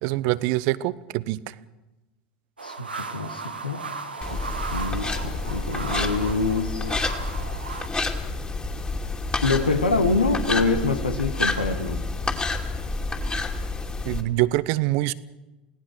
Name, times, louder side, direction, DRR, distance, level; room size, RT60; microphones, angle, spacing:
voice 1, 0.0-1.5 14.1-15.1, right 17 dB, 55° right, 18 dB, 0.8 m, -24 dB
voice 2, 2.6-3.8 4.3-4.4 4.7-6.9 9.4-12.0, left 3 dB, 85° left, 7 dB, 1.8 m, -25 dB
sound 1, 2.6-7.9, right 4 dB, 85° right, 1.9 m, -35 dB
sound 2, 4.2-14.2, left 3 dB, 20° left, 2.7 m, -29 dB
28.5 x 17.5 x 6.5 m, 1.1 s
figure-of-eight pair, 75°, 5 cm